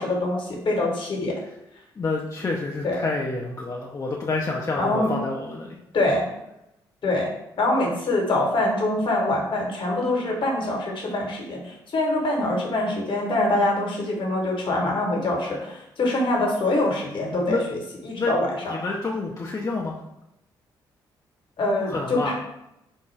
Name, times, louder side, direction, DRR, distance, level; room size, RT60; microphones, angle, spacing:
voice 1, 0.0-1.4 2.8-3.0 4.7-5.1 5.9-6.3 7.0-7.3 7.6-18.8 21.6-22.3, left 2 dB, 50° left, -1 dB, 1.0 m, -24 dB
voice 2, 2.0-5.8 17.5-17.6 18.2-18.3 18.7-20.0 21.9-22.3, left 3 dB, 30° left, -1 dB, 0.5 m, -28 dB
3.5 x 2.2 x 3.2 m, 0.86 s
hypercardioid pair, 45°, 11 cm